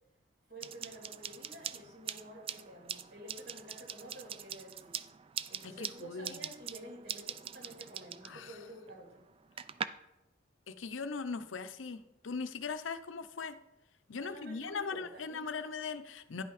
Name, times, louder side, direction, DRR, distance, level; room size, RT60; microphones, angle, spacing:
voice 1, 0.5-5.0 5.5-9.2 14.2-15.5, right 1 dB, 55° right, -1 dB, 2.9 m, -50 dB
sound 1, 0.6-9.9, right 8 dB, 30° right, 0.3 m, -43 dB
voice 2, 5.6-6.4 8.2-8.6 10.7-13.6 14.1-16.4, left 5 dB, 75° left, 11 dB, 0.6 m, -40 dB
10.5 x 5.8 x 4.9 m, 0.89 s
head